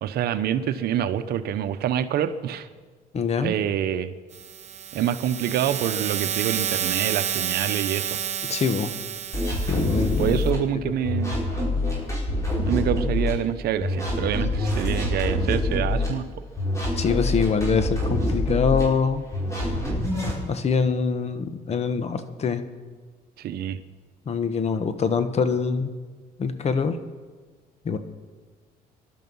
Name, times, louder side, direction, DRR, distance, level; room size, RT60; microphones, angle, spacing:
voice 1, 0.0-2.7 3.4-4.1 4.9-8.2 10.2-11.4 12.7-16.3 23.4-23.8, right 10 dB, 70° right, 11 dB, 1.0 m, -26 dB
voice 2, 3.1-3.5 8.5-8.9 9.7-10.4 17.0-19.2 20.4-22.6 24.3-25.9 26.4-27.0 27.8-28.0, left 5 dB, 40° left, 10 dB, 1.3 m, -24 dB
sound 1, 4.3-10.5, right 8 dB, 40° right, 1.0 m, -30 dB
sound 2, 9.3-10.6 11.0-13.3 13.8-16.1 16.6-18.8 19.3-20.4, left 1 dB, 15° left, 5.4 m, -25 dB
22.0 x 11.5 x 5.6 m, 1.5 s
cardioid pair, 110°, 17 cm